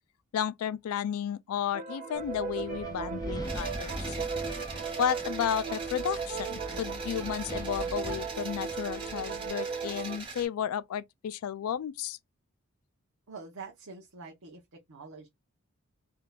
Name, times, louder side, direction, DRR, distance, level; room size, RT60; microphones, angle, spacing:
voice 1, 0.3-4.2 5.0-12.2, left 9 dB, 85° left, 0.3 m, -33 dB
sound 1, 1.7-10.2, right 5 dB, 40° right, 1.3 m, -36 dB
Wind, 2.1-9.5, left 1 dB, 15° left, 0.5 m, -42 dB
sound 2, 3.4-10.5, right 4 dB, 25° right, 1.7 m, -43 dB
voice 2, 13.3-14.6 14.9-15.3, right 4 dB, 80° right, 0.9 m, -45 dB
3.7 x 2.8 x 2.3 m
head